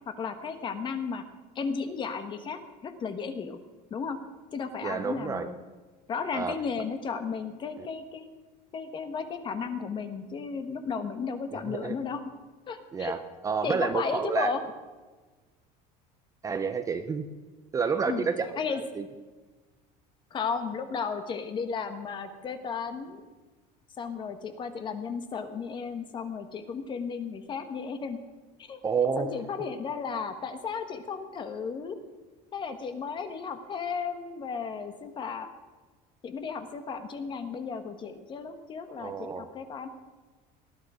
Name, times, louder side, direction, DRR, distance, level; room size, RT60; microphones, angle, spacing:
voice 1, 0.1-1.2 1.5-3.6 3.9-4.2 4.5-5.5 6.1-8.3 8.7-12.2 12.7-13.1 13.6-14.6 18.1-18.3 18.5-18.8 20.3-23.2 24.0-28.2 28.6-28.8 29.2-32.0 32.5-35.5 36.2-39.9, left 5 dB, 30° left, 9 dB, 1.3 m, -34 dB
voice 2, 4.8-5.5 6.3-6.5 7.8-7.9 11.7-11.9 12.9-13.2 13.4-14.5 16.4-17.3 17.7-19.0 28.8-29.3 39.0-39.5, right 5 dB, 20° right, 8 dB, 0.7 m, -29 dB
19.0 x 12.0 x 5.0 m, 1.3 s
cardioid pair, 165°, 17 cm